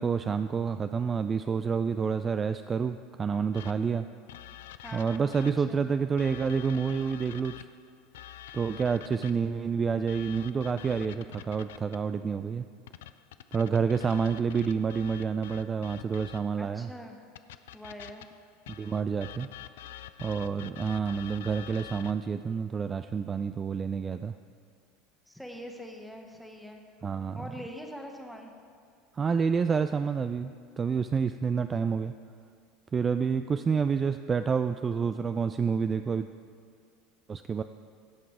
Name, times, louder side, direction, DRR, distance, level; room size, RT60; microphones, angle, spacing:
voice 1, 0.0-4.0 4.9-7.7 8.5-12.6 13.5-16.9 18.7-19.5 20.2-24.3 27.0-27.4 29.2-32.1 32.9-36.3 37.3-37.6, right 6 dB, 25° right, 10 dB, 0.3 m, -28 dB
sound 1, 3.5-5.8 6.2-9.5 10.1-12.1 12.9-16.6 17.4-22.3, left 12 dB, 70° left, 0.3 m, -47 dB
voice 2, 4.8-5.9 16.6-17.2 17.7-18.3 25.3-26.8 27.3-28.5, equal, ahead, 2 dB, 1.4 m, -43 dB
16.0 x 5.8 x 4.8 m, 2.1 s
figure-of-eight pair, 75°, 0 cm